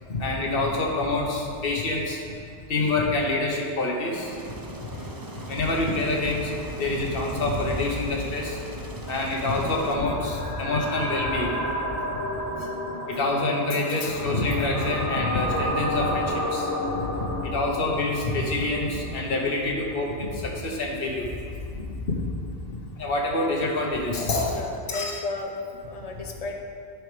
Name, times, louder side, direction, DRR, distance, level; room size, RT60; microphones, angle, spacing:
voice 1, 0.1-2.2 2.7-4.3 5.5-6.5 6.8-8.6 9.1-11.6 13.1-16.7 17.0-17.1 17.4-21.3 22.7-25.2, left 2 dB, 55° left, -1 dB, 1.3 m, -26 dB
Aircraft, 4.1-9.9, right 1 dB, 25° right, 0.6 m, -39 dB
sound 1, 9.5-19.6, left 1 dB, 15° left, 0.9 m, -31 dB
voice 2, 24.5-25.5 25.9-26.6, left 3 dB, 35° left, 2 dB, 0.8 m, -34 dB
10.0 x 4.6 x 5.1 m, 2.2 s
omnidirectional pair, 1.2 m